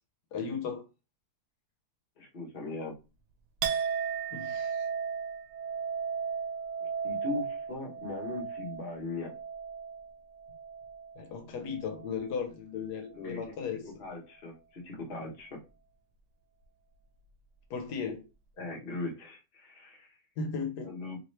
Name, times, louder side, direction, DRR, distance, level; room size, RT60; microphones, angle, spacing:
voice 1, 0.3-0.8 4.3-4.9 11.2-13.9 17.7-18.2 20.4-20.9, left 5 dB, 80° left, 1.3 m, -36 dB
voice 2, 2.2-2.9 7.0-9.3 13.1-13.4 13.8-15.6 18.6-20.2 20.8-21.2, left 3 dB, 40° left, 1.1 m, -39 dB
Chink clink, 3.6-11.3 11.6-12.3, right 6 dB, 85° right, 1.2 m, -35 dB
3.1 x 2.8 x 3.1 m
omnidirectional pair, 1.7 m